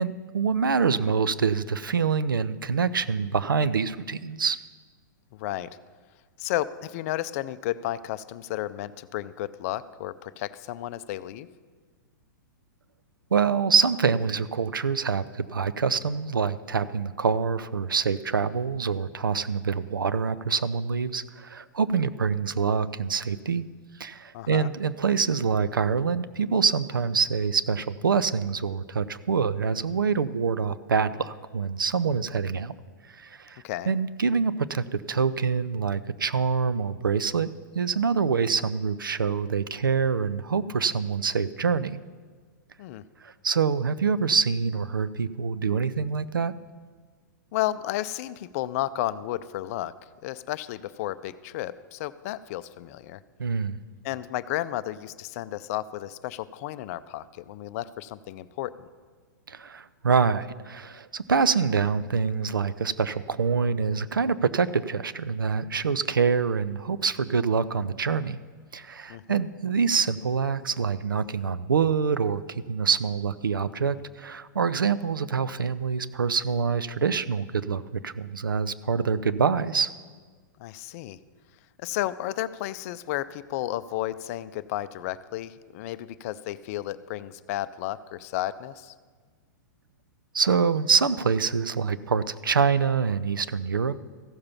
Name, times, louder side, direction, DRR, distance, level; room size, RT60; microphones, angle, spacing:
voice 1, 0.0-4.6 13.3-23.6 24.0-32.7 33.1-37.5 37.8-42.0 43.2-46.5 53.4-53.8 59.5-68.4 68.7-79.9 90.3-94.0, right 5 dB, 85° right, 14 dB, 0.5 m, -25 dB
voice 2, 5.3-5.8 6.4-11.5 24.3-24.7 33.6-33.9 42.8-43.0 47.5-49.9 50.2-53.2 54.0-58.9 69.1-69.4 80.6-81.2 81.8-88.9, left 14 dB, 45° left, 15 dB, 0.5 m, -32 dB
14.5 x 6.7 x 5.7 m, 1.5 s
hypercardioid pair, 110°, 11 cm